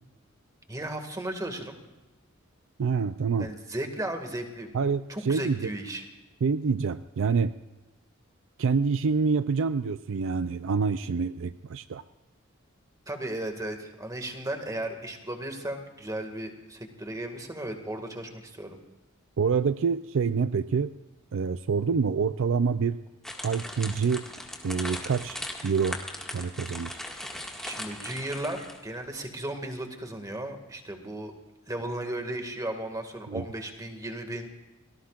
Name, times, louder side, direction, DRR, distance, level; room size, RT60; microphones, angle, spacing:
voice 1, 0.7-1.8 3.4-4.7 5.1-6.0 13.1-18.8 27.6-31.3 31.7-34.5, right 1 dB, 15° right, 5 dB, 2.0 m, -35 dB
voice 2, 2.8-3.5 4.7-5.7 6.4-7.5 8.6-12.0 19.4-20.9 21.3-23.0 23.4-24.3 24.6-25.4 25.6-26.0 26.3-27.0 33.3-33.4, right 5 dB, 65° right, 12 dB, 0.4 m, -26 dB
sound 1, 23.2-28.9, left 1 dB, ahead, 1.9 m, -39 dB
29.5 x 19.0 x 2.5 m, 1.1 s
head